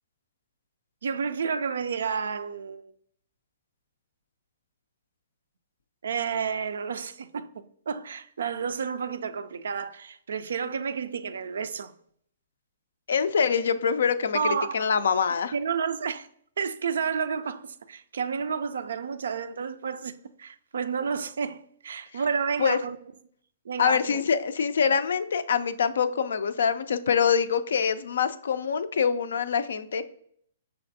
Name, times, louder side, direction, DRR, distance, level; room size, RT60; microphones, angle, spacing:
voice 1, 1.0-2.9 6.0-11.9 14.3-14.9 15.5-16.3 16.6-23.0 23.7-24.2, right 6 dB, 75° right, 0.3 m, -31 dB
voice 2, 13.1-14.4 14.7-15.5 22.6-22.8 23.8-30.0, left 6 dB, 70° left, 0.3 m, -24 dB
5.7 x 3.3 x 2.6 m
hypercardioid pair, 125°, 0 cm